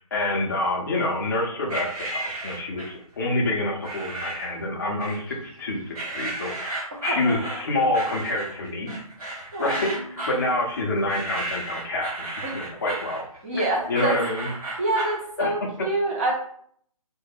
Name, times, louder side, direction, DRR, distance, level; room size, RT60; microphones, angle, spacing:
voice 1, 0.0-9.0 9.6-13.2 13.9-14.5 15.4-15.6, left 2 dB, 35° left, 0 dB, 0.6 m, -27 dB
sound 1, 1.7-3.0 3.8-4.6 5.0-5.6 5.9-15.2, right 2 dB, 75° right, 1.4 m, -34 dB
voice 2, 13.4-14.2 14.8-16.3, right 2 dB, 20° right, -4 dB, 0.6 m, -26 dB
2.3 x 2.1 x 3.4 m, 0.62 s
hypercardioid pair, 165°, 19 cm